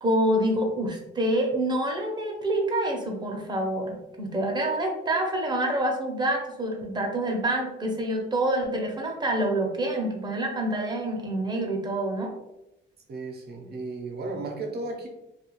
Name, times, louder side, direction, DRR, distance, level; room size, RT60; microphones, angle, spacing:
voice 1, 0.0-12.3, right 1 dB, 20° right, 1 dB, 0.7 m, -27 dB
voice 2, 13.1-15.1, right 3 dB, 55° right, 1 dB, 0.7 m, -34 dB
2.4 x 2.3 x 3.0 m, 0.91 s
cardioid pair, 90°, 20 cm